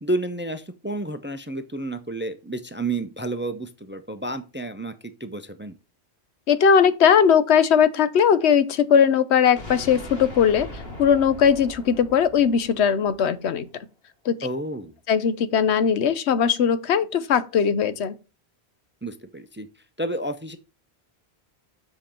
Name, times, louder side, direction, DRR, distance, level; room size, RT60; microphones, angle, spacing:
voice 1, 0.0-4.9 5.2-5.8 14.4-14.9 19.0-19.7 20.0-20.6, right 2 dB, 15° right, 0.5 m, -30 dB
voice 2, 6.5-10.7 11.0-13.6 14.3-14.4 15.1-18.1, left 7 dB, 85° left, 1.0 m, -19 dB
sound 1, 9.6-13.5, left 1 dB, 65° left, 2.5 m, -39 dB
7.6 x 5.1 x 4.4 m
omnidirectional pair, 1.1 m